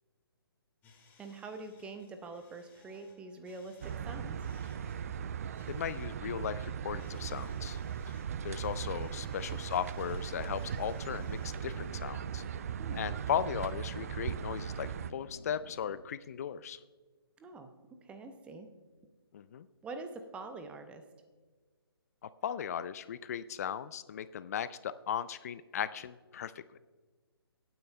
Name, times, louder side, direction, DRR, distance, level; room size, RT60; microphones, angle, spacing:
sound 1, 0.8-12.4, left 4 dB, 15° left, 1.7 m, -64 dB
voice 1, 1.2-4.4 9.2-9.3 12.8-13.0 17.4-18.7 19.8-21.0, right 3 dB, 10° right, 7 dB, 0.7 m, -45 dB
sound 2, 3.8-15.1, right 8 dB, 35° right, 0.4 m, -38 dB
voice 2, 5.7-7.8 8.1-12.4 13.0-16.8 19.3-19.7 22.2-26.8, left 9 dB, 40° left, 15 dB, 0.4 m, -37 dB
sound 3, 10.7-16.0, left 2 dB, 90° left, 1.2 m, -53 dB
22.5 x 9.4 x 2.2 m, 1.4 s
figure-of-eight pair, 140°, 13 cm